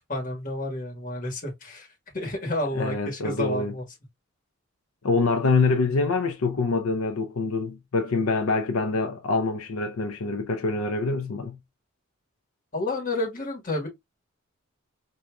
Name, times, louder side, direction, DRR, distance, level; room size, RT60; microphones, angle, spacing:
voice 1, 0.1-1.9 2.1-3.8 12.7-13.9, left 1 dB, 40° left, 1.4 m, -30 dB
voice 2, 2.8-3.7 5.0-11.6, left 3 dB, 85° left, 0.5 m, -25 dB
4.6 x 2.6 x 2.2 m
head